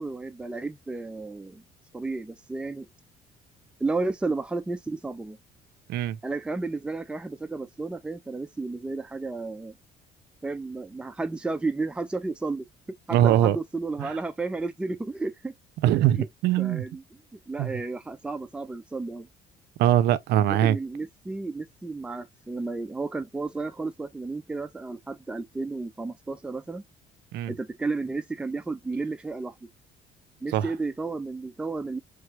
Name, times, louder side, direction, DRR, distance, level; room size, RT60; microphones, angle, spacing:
voice 1, 0.0-1.6 1.9-2.9 3.8-5.4 6.2-9.8 10.4-12.7 13.1-15.5 16.2-16.3 16.6-17.0 17.3-19.3 20.6-26.8 27.5-29.5 30.4-32.0, right 3 dB, 5° right, 0.4 m, -32 dB
voice 2, 13.1-13.6 14.0-14.1 15.8-16.8 17.6-17.7 19.8-20.8 27.3-27.5 30.5-30.7, right 12 dB, 75° right, 0.4 m, -22 dB
3.4 x 2.3 x 3.0 m
cardioid pair, 110°, 17 cm